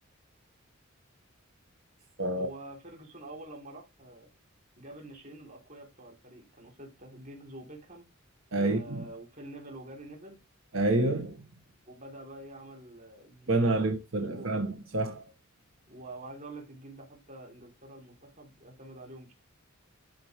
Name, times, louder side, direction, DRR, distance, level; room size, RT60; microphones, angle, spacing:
voice 1, 2.3-4.3 4.8-8.1 8.6-10.4 11.8-13.9 14.3-14.6 15.9-19.3, right 1 dB, 40° right, 3.5 m, -47 dB
voice 2, 8.5-9.0 10.7-11.4 13.5-15.2, right 2 dB, 70° right, 1.6 m, -28 dB
12.5 x 4.6 x 3.3 m
head